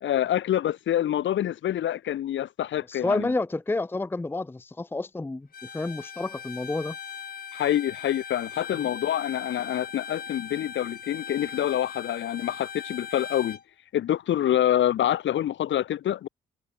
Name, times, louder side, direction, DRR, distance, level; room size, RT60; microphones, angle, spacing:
voice 1, 0.0-3.3 7.5-13.6 13.9-16.3, left 11 dB, 70° left, 2.6 m, -26 dB
voice 2, 2.9-5.5 5.7-7.0 8.8-8.9, left 2 dB, 10° left, 0.6 m, -29 dB
Bowed string instrument, 5.5-13.6, left 7 dB, 50° left, 3.4 m, -39 dB
cardioid pair, 90°, 20 cm